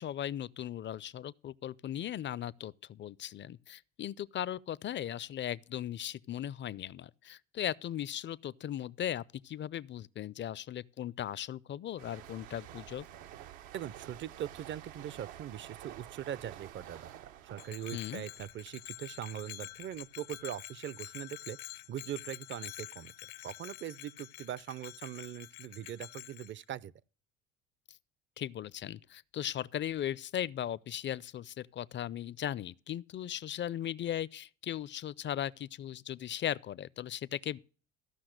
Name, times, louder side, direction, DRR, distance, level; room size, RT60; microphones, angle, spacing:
voice 1, 0.0-13.1 17.9-18.2 28.4-37.6, left 11 dB, 30° left, 0.4 m, -38 dB
sound 1, 12.0-19.4 19.7-20.1, right 11 dB, 75° right, 0.9 m, -50 dB
voice 2, 13.7-17.1 17.4-21.6 21.9-26.9, right 10 dB, 30° right, 0.5 m, -41 dB
Bell, 17.5-26.5, left 19 dB, 75° left, 0.6 m, -47 dB
14.5 x 5.7 x 6.4 m
hypercardioid pair, 70°, 38 cm